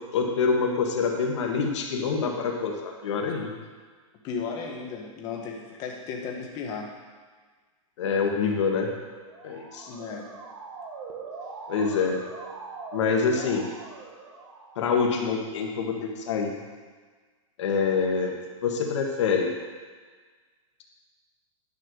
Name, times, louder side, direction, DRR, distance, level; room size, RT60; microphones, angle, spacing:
voice 1, 0.1-3.5 8.0-8.9 9.4-9.9 11.7-12.2 12.9-13.7 14.8-16.5 17.6-19.5, left 5 dB, 55° left, 1 dB, 1.8 m, -26 dB
voice 2, 4.2-6.9 9.8-10.3, left 5 dB, 20° left, 0 dB, 1.3 m, -35 dB
Motor vehicle (road) / Siren, 9.1-15.0, right 4 dB, 50° right, 1.4 m, -42 dB
11.0 x 5.8 x 6.4 m, 1.5 s
supercardioid pair, 175°, 18 cm